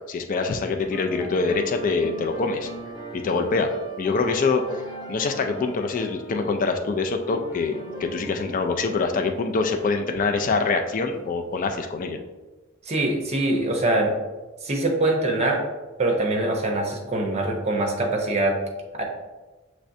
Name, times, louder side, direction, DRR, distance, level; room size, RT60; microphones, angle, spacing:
voice 1, 0.1-2.7 3.1-3.7 4.0-4.6 5.1-7.7 8.0-12.2, left 4 dB, 40° left, 5 dB, 0.3 m, -24 dB
sound 1, 0.8-12.1, right 1 dB, 20° left, 0.8 m, -39 dB
voice 2, 12.9-14.1 14.6-15.6 16.0-18.6 18.9-19.0, right 2 dB, 30° right, 1 dB, 0.8 m, -23 dB
5.9 x 3.2 x 2.6 m, 1.2 s
head